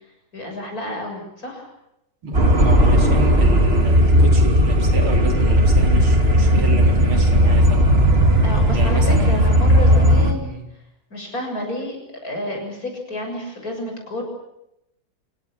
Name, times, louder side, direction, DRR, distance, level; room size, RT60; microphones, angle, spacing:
voice 1, 0.3-1.7 8.4-10.5 11.1-12.0 12.2-14.2, left 1 dB, 45° left, 2 dB, 7.4 m, -30 dB
voice 2, 2.2-7.9 8.7-9.6 10.4-10.6, right 2 dB, 90° right, 3 dB, 5.0 m, -29 dB
sound 1, 2.3-10.3, equal, 30° right, 2.6 m, -15 dB
27.5 x 17.0 x 8.9 m, 0.83 s
omnidirectional pair, 2.2 m